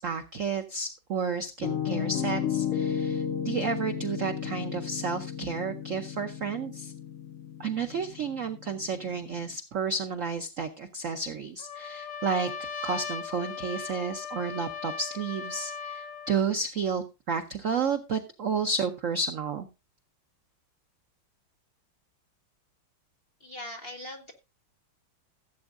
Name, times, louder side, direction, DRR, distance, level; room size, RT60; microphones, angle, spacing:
voice 1, 0.0-6.9 7.6-12.5 12.8-19.7, right 5 dB, 75° right, 7 dB, 0.7 m, -31 dB
Piano, 1.6-9.5, left 8 dB, 90° left, 1.8 m, -33 dB
Trumpet, 11.6-16.4, left 6 dB, 60° left, 1.7 m, -38 dB
voice 2, 23.4-24.3, left 1 dB, 35° left, 3 dB, 0.9 m, -40 dB
16.0 x 8.1 x 2.5 m, 0.27 s
omnidirectional pair, 2.4 m